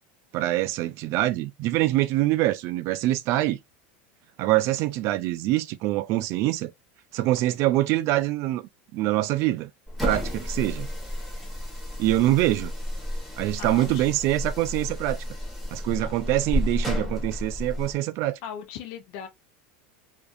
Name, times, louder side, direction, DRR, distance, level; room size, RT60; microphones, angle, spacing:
voice 1, 0.3-3.6 4.4-6.7 7.1-9.7 10.0-10.9 12.0-12.7 13.4-15.2 15.7-18.4, right 16 dB, 50° right, 0.4 m, -24 dB
sound 1, 9.9-18.0, left 1 dB, ahead, 1.3 m, -31 dB
voice 2, 13.6-14.1 16.0-16.1 18.4-19.3, left 9 dB, 60° left, 0.6 m, -38 dB
2.5 x 2.3 x 2.5 m
supercardioid pair, 125°, 6 cm